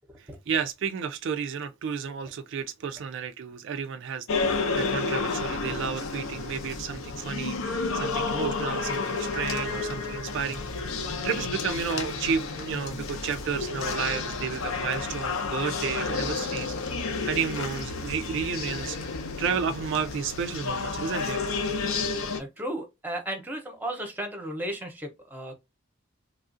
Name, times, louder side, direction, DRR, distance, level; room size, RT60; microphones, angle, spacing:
voice 1, 0.2-10.8 11.2-16.7 17.2-21.4, right 6 dB, 60° right, 0.3 m, -32 dB
sound 1, 4.3-22.4, left 4 dB, 80° left, 0.6 m, -31 dB
voice 2, 22.4-25.5, right 1 dB, 10° right, 0.7 m, -34 dB
3.3 x 2.4 x 2.5 m
head